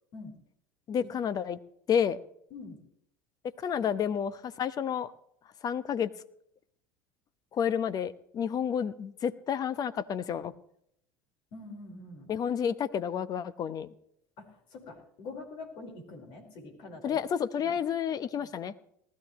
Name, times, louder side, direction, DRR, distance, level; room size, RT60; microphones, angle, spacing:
voice 1, 0.9-1.6 1.9-2.2 3.6-5.1 5.6-6.1 7.5-10.5 12.3-13.9 17.0-18.7, left 8 dB, 40° left, 14 dB, 1.0 m, -30 dB
voice 2, 11.5-12.3 14.4-17.2 17.6-17.8 18.3-18.5, left 3 dB, 55° left, 3 dB, 4.8 m, -45 dB
19.5 x 14.0 x 3.2 m, 0.70 s
hypercardioid pair, 80°, 10 cm